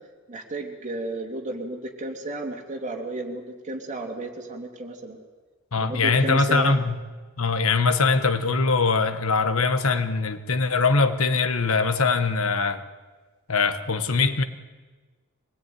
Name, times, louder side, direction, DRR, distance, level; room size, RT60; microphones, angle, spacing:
voice 1, 0.3-5.2 5.8-6.7, right 2 dB, 35° right, 2 dB, 2.9 m, -33 dB
voice 2, 5.7-7.0 7.4-12.8 13.5-14.4, left 4 dB, 80° left, 10 dB, 1.4 m, -22 dB
23.5 x 18.5 x 9.5 m, 1.4 s
head